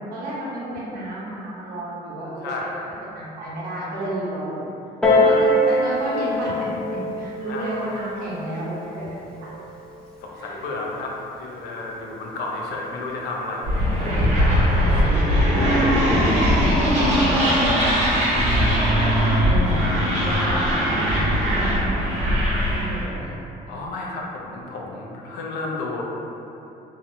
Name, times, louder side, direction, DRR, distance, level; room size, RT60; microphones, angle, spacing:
voice 1, 0.1-2.9 3.1-4.6 5.1-6.7 7.1-9.2 10.3-10.6 14.7-15.2 15.5-18.1 18.5-19.1 19.4-19.8 20.2-23.4, right 1 dB, 60° right, -8 dB, 0.9 m, -31 dB
voice 2, 2.4-2.9 5.3-5.5 7.5-7.9 10.2-13.8 14.5-14.8 15.5-16.0 18.5-18.6 23.7-26.0, left 2 dB, 80° left, -2 dB, 0.5 m, -32 dB
Piano, 5.0-10.2 11.0-11.1, left 1 dB, 5° left, 0.5 m, -23 dB
sound 1, 13.6-23.0, equal, 45° right, 1.1 m, -20 dB
2.8 x 2.1 x 2.7 m, 2.8 s
cardioid pair, 110°, 17 cm